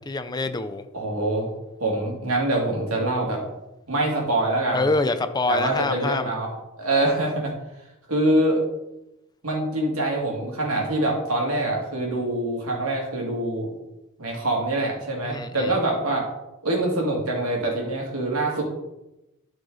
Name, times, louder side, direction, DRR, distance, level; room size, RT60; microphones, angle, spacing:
voice 1, 0.1-0.8 4.7-6.3 15.2-15.7, left 3 dB, 20° left, 10 dB, 0.5 m, -25 dB
voice 2, 0.9-1.5 1.8-3.4 3.9-4.9 5.5-6.5 6.8-7.5 8.1-8.6 9.4-13.7 14.2-16.3 16.6-18.6, right 1 dB, 85° right, -1 dB, 2.5 m, -24 dB
12.0 x 4.9 x 4.0 m, 0.94 s
head